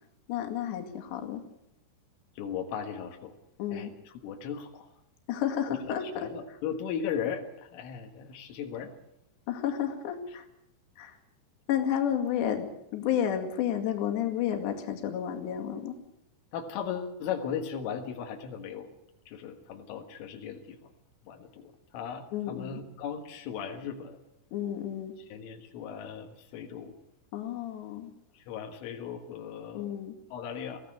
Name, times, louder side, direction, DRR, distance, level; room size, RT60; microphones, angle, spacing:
voice 1, 0.3-1.4 3.6-3.9 5.3-6.3 9.5-10.5 11.0-11.2 11.7-12.7 12.9-15.9 22.3-22.8 24.5-25.1 27.3-28.1 29.7-30.2, left 9 dB, 65° left, 4 dB, 4.3 m, -31 dB
voice 2, 2.4-3.3 3.7-3.9 4.2-4.9 6.2-8.9 16.5-18.9 19.3-20.8 21.3-24.2 25.3-27.0 28.4-29.9 30.3-30.8, left 7 dB, 85° left, 4 dB, 4.2 m, -37 dB
23.0 x 16.0 x 8.6 m, 0.81 s
omnidirectional pair, 5.6 m